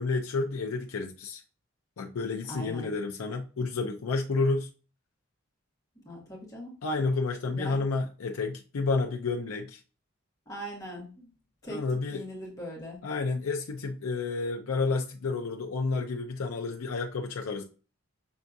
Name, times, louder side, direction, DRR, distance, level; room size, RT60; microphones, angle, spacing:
voice 1, 0.0-1.4 2.0-4.7 6.8-9.8 11.7-12.2 13.0-17.6, left 3 dB, 85° left, 0.5 m, -30 dB
voice 2, 2.5-2.9 6.0-6.7 7.5-7.8 10.5-11.3 11.6-13.0, equal, 15° left, 1.7 m, -40 dB
5.8 x 3.4 x 2.6 m
head